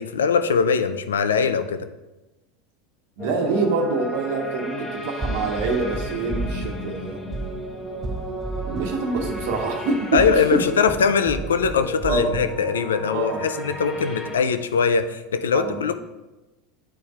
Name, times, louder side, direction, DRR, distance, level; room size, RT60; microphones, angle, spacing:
voice 1, 0.0-1.9 10.1-15.9, left 6 dB, 85° left, 10 dB, 0.4 m, -21 dB
sound 1, 3.2-14.4, equal, 25° left, 1.3 m, -34 dB
voice 2, 3.2-7.2 8.6-10.2 10.5-10.6 12.1-12.4 13.1-13.7 15.5-15.9, right 4 dB, 65° right, 3 dB, 1.1 m, -26 dB
sound 2, 5.2-12.7, right 2 dB, 25° right, 0.4 m, -33 dB
10.0 x 4.3 x 2.4 m, 1.1 s
hypercardioid pair, 90°, 0 cm